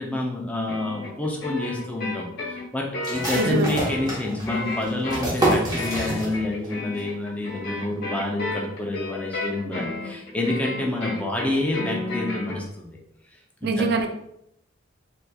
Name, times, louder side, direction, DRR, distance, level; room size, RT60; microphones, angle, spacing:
voice 1, 0.0-13.0 13.6-13.9, left 2 dB, 5° left, -2 dB, 0.5 m, -28 dB
sound 1, 0.7-12.6, left 2 dB, 55° left, 0.9 m, -33 dB
sound 2, 3.0-6.7 6.9-7.0 7.5-7.9, right 1 dB, 20° right, 0.9 m, -27 dB
voice 2, 3.3-3.7 13.6-14.1, right 4 dB, 55° right, 5 dB, 0.3 m, -24 dB
3.4 x 2.9 x 2.3 m, 0.77 s
head